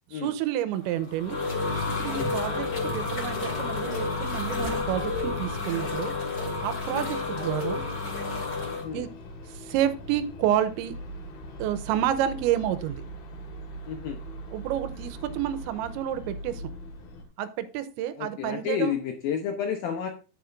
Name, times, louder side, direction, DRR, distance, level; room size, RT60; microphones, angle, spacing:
voice 1, 0.1-1.4 1.7-6.1 6.6-7.8 8.9-9.1 9.5-11.0 11.6-13.0 14.5-16.6 17.4-19.0, right 11 dB, 90° right, 12 dB, 3.0 m, -29 dB
sound 1, 0.8-8.8, left 3 dB, 35° left, 1.9 m, -30 dB
sound 2, 2.1-17.2, equal, 60° left, 3.3 m, -42 dB
voice 2, 13.9-14.2 18.2-20.1, left 7 dB, 75° left, 4 dB, 2.2 m, -31 dB
9.9 x 9.5 x 2.5 m, 0.34 s
omnidirectional pair, 5.3 m